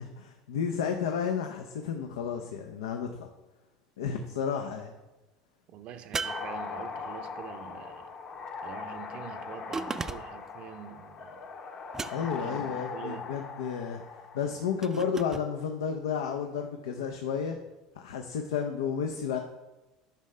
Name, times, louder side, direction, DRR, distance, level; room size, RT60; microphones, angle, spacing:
voice 1, 0.0-3.3 4.0-4.9 12.1-14.0 14.3-17.6 17.9-19.4, left 7 dB, 90° left, 5 dB, 0.5 m, -32 dB
voice 2, 5.7-8.2 8.6-11.5 12.1-13.3, right 8 dB, 55° right, 10 dB, 0.6 m, -45 dB
sound 1, 6.1-7.2 9.7-10.5 11.9-12.5 14.8-15.5, right 4 dB, 20° right, 0.4 m, -36 dB
sound 2, 6.2-14.9, left 5 dB, 45° left, 0.8 m, -40 dB
10.0 x 5.5 x 3.2 m, 1.1 s
supercardioid pair, 90°, 2 cm